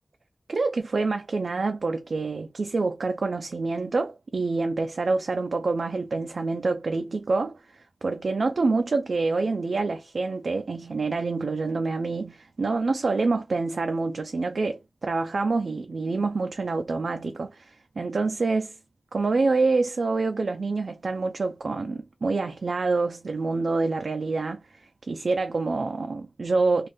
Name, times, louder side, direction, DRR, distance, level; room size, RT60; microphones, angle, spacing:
voice 1, 0.5-18.8 19.1-26.9, right 3 dB, 75° right, 0.4 m, -27 dB
2.6 x 2.3 x 3.3 m
wide cardioid pair, 85°, 0 cm